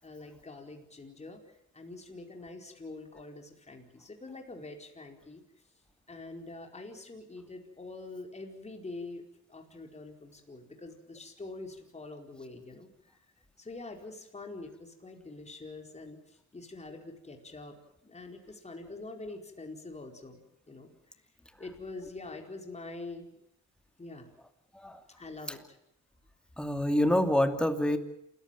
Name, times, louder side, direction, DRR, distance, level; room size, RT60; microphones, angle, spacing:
voice 1, 0.0-5.4 6.1-9.2 9.5-13.1 13.6-17.7 18.0-21.3 21.6-23.3 24.0-24.3 25.2-25.8, left 2 dB, 20° left, 3 dB, 4.7 m, -45 dB
voice 2, 26.6-28.0, left 1 dB, 5° left, 7 dB, 2.7 m, -26 dB
28.0 x 15.0 x 9.1 m, 0.76 s
cardioid pair, 90°, 30 cm